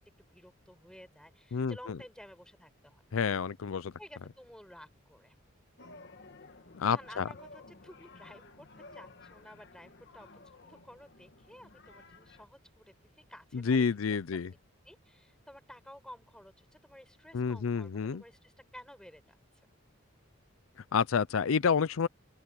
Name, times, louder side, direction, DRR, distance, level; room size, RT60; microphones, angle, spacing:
voice 1, 0.3-3.0 4.0-5.3 6.8-14.4 14.8-19.4, equal, 5° left, 6.7 m, -53 dB
voice 2, 3.1-3.9 6.7-7.3 13.5-14.5 17.3-18.2 20.9-22.1, left 6 dB, 80° left, 0.5 m, -29 dB
sound 1, 5.8-12.4, left 3 dB, 55° left, 1.7 m, -54 dB
open air
head